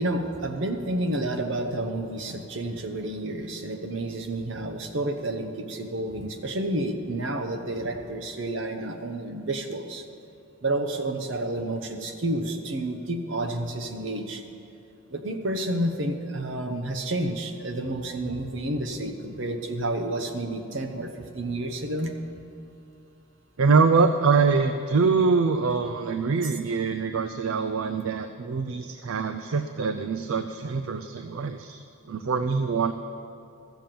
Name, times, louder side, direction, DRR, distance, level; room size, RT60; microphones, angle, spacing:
voice 1, 0.0-10.0 10.6-14.4 15.1-22.1 26.4-26.5, right 1 dB, 60° right, 5 dB, 0.9 m, -30 dB
voice 2, 23.6-32.9, right 4 dB, 75° right, 7 dB, 0.5 m, -24 dB
14.0 x 7.1 x 7.6 m, 2.7 s
head